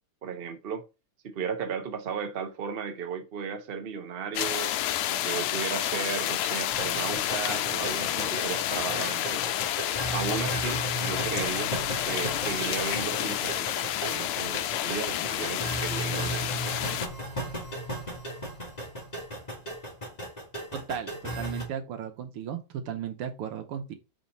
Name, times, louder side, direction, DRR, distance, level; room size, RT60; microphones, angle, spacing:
voice 1, 0.2-0.8 1.2-4.8 5.1-9.4 10.1-11.7 12.1-16.7, right 6 dB, 70° right, 0.5 m, -35 dB
sound 1, 4.4-17.1, left 12 dB, 80° left, 1.4 m, -30 dB
sound 2, 6.7-21.7, right 1 dB, 20° left, 1.5 m, -36 dB
voice 2, 20.7-23.9, right 8 dB, 90° right, 1.9 m, -35 dB
4.3 x 4.2 x 5.2 m
omnidirectional pair, 2.4 m